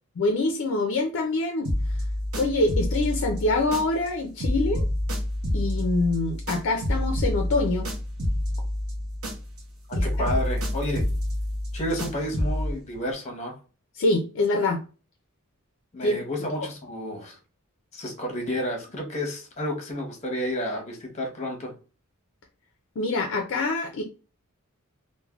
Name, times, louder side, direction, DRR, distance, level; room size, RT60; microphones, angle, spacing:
voice 1, 0.2-1.7 2.4-4.8 5.5-7.9 9.9-10.0 14.0-14.8 16.0-16.2 23.0-24.0, left 2 dB, 60° left, 3 dB, 0.4 m, -25 dB
sound 1, 1.6-4.1 4.4-9.6 9.9-12.7, left 1 dB, 65° right, 0.7 m, -28 dB
voice 2, 9.9-11.1 11.7-13.6 15.9-17.4 17.9-21.7, equal, 30° left, 2 dB, 0.8 m, -31 dB
3.2 x 2.0 x 2.3 m, 0.34 s
head